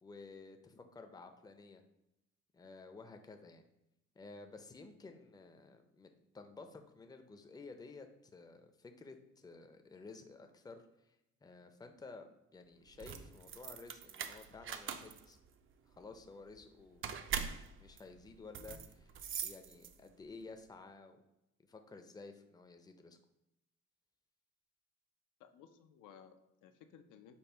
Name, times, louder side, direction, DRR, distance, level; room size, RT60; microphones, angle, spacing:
voice 1, 0.0-1.8 2.5-3.6 4.2-15.4 15.9-17.0 17.8-19.1 19.4-21.2 21.7-23.2, left 3 dB, 15° left, 6 dB, 0.4 m, -53 dB
sound 1, 12.9-20.2, right 7 dB, 45° right, 0.4 m, -43 dB
voice 2, 25.4-27.4, left 8 dB, 90° left, 7 dB, 0.5 m, -58 dB
5.4 x 2.2 x 4.4 m, 0.89 s
cardioid pair, 90°, 30 cm